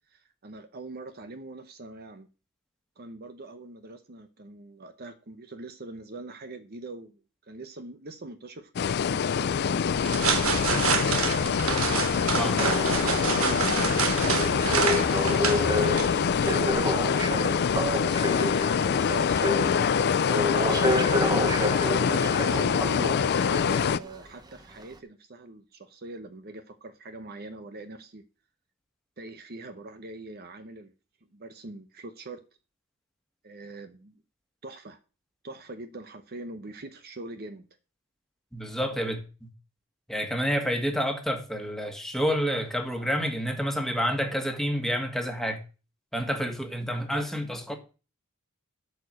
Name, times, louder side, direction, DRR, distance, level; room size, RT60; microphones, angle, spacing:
voice 1, 0.1-2.3 3.0-11.3 12.4-18.5 19.3-21.1 21.9-28.2 29.2-30.9 31.3-32.4 33.4-34.2 34.6-35.0 35.4-37.7 38.9-39.2, right 2 dB, 45° right, 0.9 m, -43 dB
sound 1, 8.8-24.0, left 6 dB, 50° left, 0.4 m, -25 dB
sound 2, 9.9-16.7, right 6 dB, 75° right, 1.2 m, -28 dB
sound 3, 12.6-24.2 24.8-24.9, equal, 20° right, 1.0 m, -30 dB
voice 2, 38.5-39.2 40.1-45.6 46.1-47.7, equal, ahead, 1.7 m, -29 dB
12.5 x 4.7 x 6.4 m
head